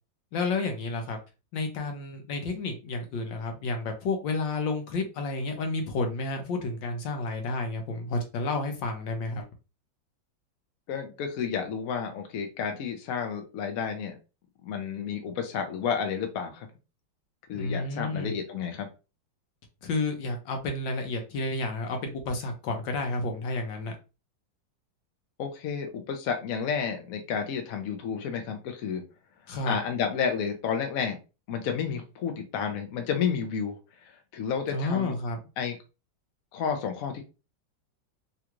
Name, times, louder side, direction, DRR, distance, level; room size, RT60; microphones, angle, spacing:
voice 1, 0.3-1.2 1.5-9.4 17.5-18.3 19.8-24.0 29.5-29.8 34.7-35.4, left 3 dB, 75° left, 4 dB, 1.5 m, -31 dB
voice 2, 10.9-14.2 14.6-16.7 17.5-18.9 25.4-29.0 29.7-31.2 31.5-33.8 34.3-35.1 35.6-35.8 36.5-37.2, left 7 dB, 60° left, 5 dB, 0.9 m, -31 dB
3.8 x 2.3 x 2.9 m, 0.29 s
omnidirectional pair, 2.1 m